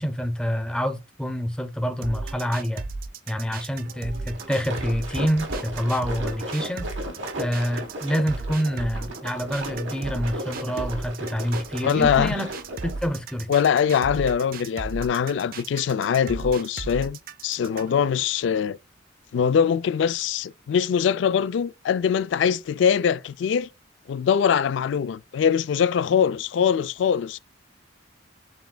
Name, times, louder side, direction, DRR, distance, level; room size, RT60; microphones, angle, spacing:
voice 1, 0.0-2.8 3.3-6.9 7.4-12.5 12.8-13.5, equal, 5° left, 0.7 m, -27 dB
sound 1, 2.0-18.0, right 3 dB, 50° right, 0.4 m, -36 dB
sound 2, 4.1-13.1, right 1 dB, 70° right, 1.4 m, -35 dB
voice 2, 11.8-12.3 13.5-18.8 19.3-23.7 24.1-27.4, left 7 dB, 65° left, 0.3 m, -22 dB
7.3 x 3.3 x 2.2 m
head